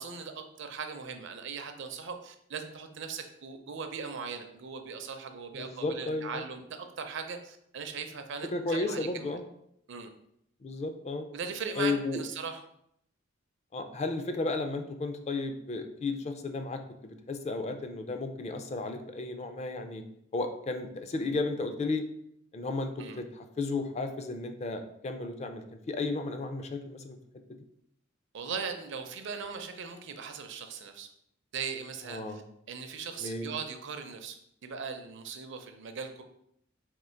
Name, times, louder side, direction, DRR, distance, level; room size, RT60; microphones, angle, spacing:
voice 1, 0.0-9.4 9.9-10.1 11.3-12.6 23.0-23.2 28.3-31.1 31.5-32.4 32.7-34.4 34.6-36.2, right 5 dB, 65° right, 7 dB, 0.5 m, -39 dB
voice 2, 5.5-6.4 8.5-9.4 10.6-11.3 11.8-12.2 13.7-20.0 20.3-22.0 22.5-27.2 32.1-32.4 33.2-33.5, left 3 dB, 35° left, 7 dB, 0.4 m, -33 dB
3.7 x 2.8 x 4.3 m, 0.73 s
head